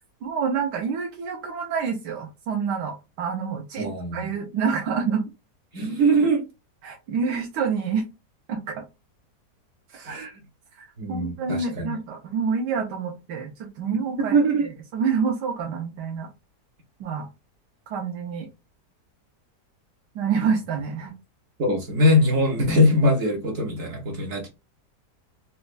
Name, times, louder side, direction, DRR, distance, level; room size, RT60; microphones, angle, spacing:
voice 1, 0.2-5.2 6.8-8.1 8.5-8.8 9.9-10.2 10.8-14.4 14.9-16.3 17.0-17.3 17.9-18.5 20.1-21.1, right 6 dB, 80° right, 1.3 m, -27 dB
voice 2, 3.8-4.3 5.7-6.4 10.1-10.3 11.0-11.9 14.2-14.7 21.6-24.5, equal, 60° right, 1.0 m, -22 dB
4.2 x 2.1 x 2.4 m
omnidirectional pair, 1.8 m